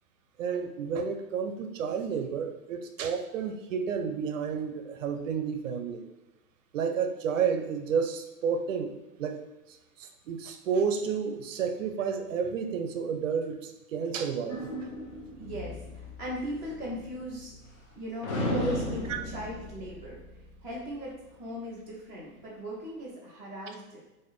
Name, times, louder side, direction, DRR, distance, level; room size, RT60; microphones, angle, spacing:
voice 1, 0.4-6.0 6.7-9.4 10.0-14.7 19.1-19.2, right 6 dB, 55° right, 6 dB, 0.5 m, -31 dB
sound 1, 14.5-17.9 18.2-20.9, left 1 dB, 45° left, 1.1 m, -36 dB
voice 2, 15.4-17.5 18.0-20.2 20.6-24.0, equal, 10° left, -11 dB, 0.4 m, -38 dB
4.0 x 2.5 x 3.0 m, 1.0 s
hypercardioid pair, 140°, 46 cm